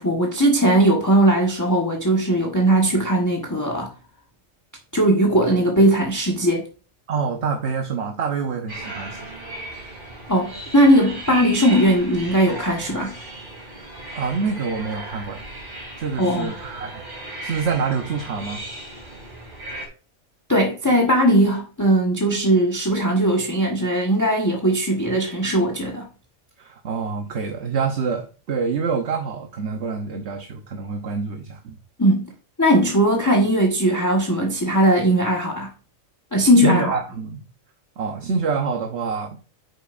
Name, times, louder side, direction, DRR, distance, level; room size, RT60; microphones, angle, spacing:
voice 1, 0.0-3.9 4.9-6.7 10.3-13.1 16.2-16.5 20.5-26.1 32.0-32.3 32.6-35.7 36.3-37.0, right 1 dB, 15° left, 1.3 m, -19 dB
voice 2, 7.1-9.3 14.1-15.4 16.0-17.0 17.4-18.6 26.6-31.8 36.6-37.4 38.0-39.4, right 5 dB, 55° right, 1.2 m, -26 dB
sound 1, 8.7-19.9, right 2 dB, 35° right, 3.3 m, -36 dB
9.3 x 7.2 x 2.6 m
omnidirectional pair, 1.4 m